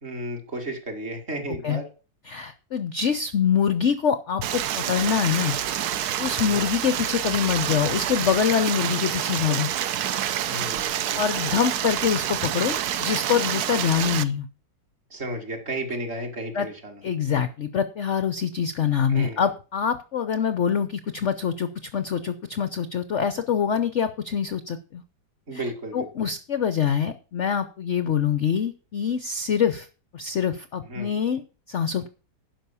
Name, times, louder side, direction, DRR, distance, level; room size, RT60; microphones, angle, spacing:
voice 1, 0.0-1.9 6.4-6.7 10.5-11.2 15.1-17.0 19.1-19.4 25.5-26.3 30.9-31.1, right 1 dB, 35° right, 3 dB, 2.2 m, -33 dB
voice 2, 2.3-5.6 6.2-9.7 11.2-14.5 16.5-16.7 17.0-25.0 25.5-25.6 25.9-29.9 30.1-31.4 31.7-32.1, left 7 dB, 65° left, 11 dB, 0.7 m, -25 dB
Stream, 4.4-14.2, right 10 dB, 65° right, 1.1 m, -27 dB
11.5 x 5.5 x 7.1 m, 0.35 s
omnidirectional pair, 2.1 m